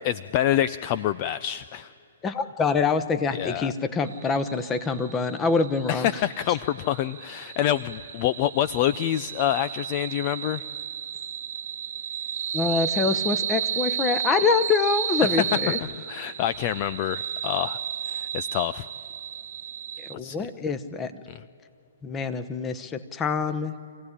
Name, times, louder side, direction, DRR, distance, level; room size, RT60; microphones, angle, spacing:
voice 1, 0.0-1.9 3.3-3.7 5.9-10.6 15.3-15.4 16.1-17.8 18.1-18.9 20.2-20.4, left 12 dB, 35° left, 15 dB, 0.5 m, -26 dB
voice 2, 2.2-6.1 12.5-15.8 20.0-21.1 22.0-23.7, left 5 dB, 15° left, 10 dB, 1.1 m, -25 dB
sound 1, 4.1-20.1, right 9 dB, 60° right, 0.9 m, -33 dB
25.5 x 16.0 x 9.9 m, 2.7 s
hypercardioid pair, 140°, 0 cm